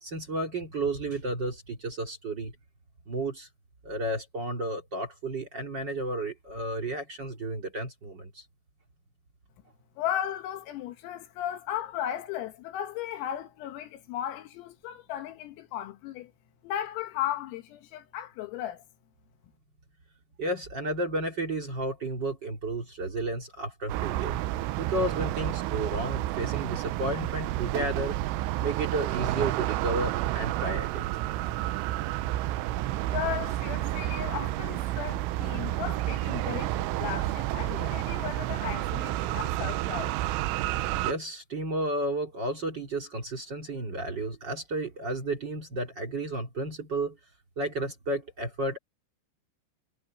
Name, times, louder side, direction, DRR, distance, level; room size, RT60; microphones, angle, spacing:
voice 1, 0.0-2.5 3.1-3.5 3.8-8.4 20.4-24.4 24.8-28.2 28.6-31.1 41.0-47.2 47.6-48.8, right 2 dB, 35° right, 1.8 m, -32 dB
voice 2, 10.0-16.3 16.6-18.8 33.1-40.1, left 11 dB, 85° left, 4.2 m, -35 dB
sound 1, 23.9-41.1, right 15 dB, 85° right, 3.2 m, -30 dB
omnidirectional pair, 5.9 m